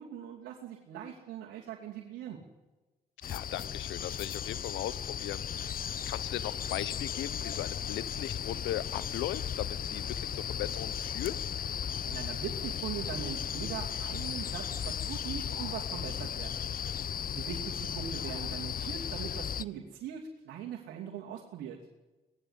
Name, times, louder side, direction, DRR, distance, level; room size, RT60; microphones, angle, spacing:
voice 1, 0.0-2.4 12.1-16.9 17.3-21.8, right 9 dB, 75° right, -1 dB, 2.8 m, -41 dB
voice 2, 3.2-11.3, left 14 dB, 75° left, 17 dB, 1.0 m, -38 dB
sound 1, 3.2-19.6, left 9 dB, 50° left, 0.7 m, -36 dB
23.0 x 19.0 x 8.3 m, 1.2 s
hypercardioid pair, 50°, 19 cm